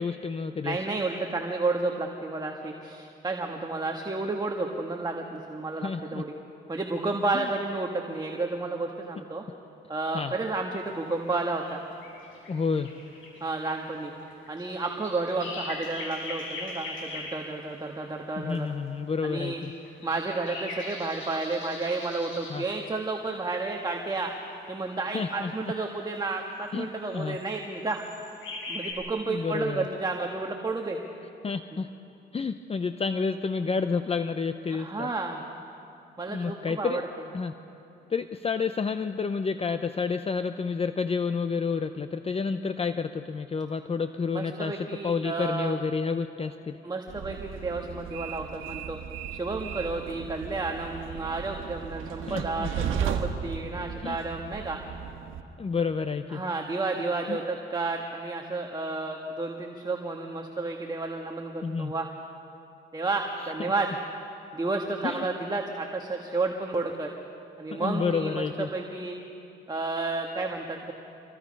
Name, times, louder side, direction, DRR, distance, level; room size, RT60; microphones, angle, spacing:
voice 1, 0.0-0.8 5.8-6.2 7.3-7.5 10.1-10.3 12.5-12.9 18.4-19.7 22.5-22.6 25.1-25.5 26.7-26.9 27.1-27.4 29.3-29.9 31.4-31.9 32.3-35.1 36.3-37.0 37.3-37.5 38.1-46.8 52.2-52.7 54.0-54.2 55.6-56.4 57.3-57.4 61.6-61.9 63.4-63.5 65.0-65.2 67.7-68.7, left 5 dB, 30° left, 9 dB, 0.7 m, -30 dB
voice 2, 0.6-6.3 6.7-9.4 9.9-11.8 13.4-14.1 14.5-18.7 19.2-19.6 20.0-24.3 24.7-28.0 28.7-31.0 34.7-35.4 36.2-37.0 44.3-45.8 46.8-49.0 49.3-54.8 56.3-62.1 62.9-63.9 64.5-67.1 67.6-68.4 68.7-69.2 69.7-70.9, right 3 dB, 20° right, 2 dB, 1.7 m, -31 dB
sound 1, 10.8-18.6 19.5-22.7 24.1-25.4 25.8-26.2 27.2-27.6 27.9-28.9, left 2 dB, 85° left, 6.6 m, -41 dB
Train, 47.1-55.4, right 8 dB, 85° right, 1.4 m, -35 dB
26.5 x 22.5 x 5.4 m, 2.8 s
cardioid pair, 90°, 20 cm